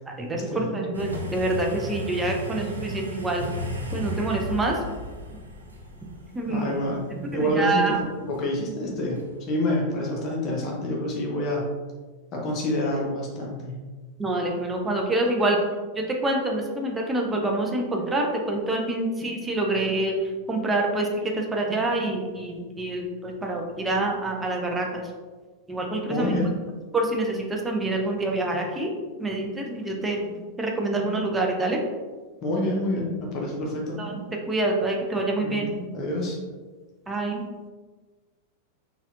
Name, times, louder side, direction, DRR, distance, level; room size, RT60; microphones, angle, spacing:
voice 1, 0.2-3.4 3.9-4.8 6.3-6.8 7.4-8.0 14.2-15.6 16.0-20.1 20.5-25.0 25.7-26.5 26.9-28.9 29.2-30.2 30.6-31.8 34.0-34.2 34.5-35.8 37.1-37.4, right 2 dB, 15° right, 0 dB, 0.5 m, -26 dB
sound 1, 0.9-9.5, left 1 dB, 80° right, 0.5 m, -35 dB
voice 2, 6.5-11.7 12.3-13.8 26.1-26.5 32.4-34.0 35.4-35.6 35.9-36.4, left 1 dB, 35° left, -2 dB, 0.8 m, -27 dB
4.1 x 2.4 x 2.6 m, 1.3 s
figure-of-eight pair, 90°, 0 cm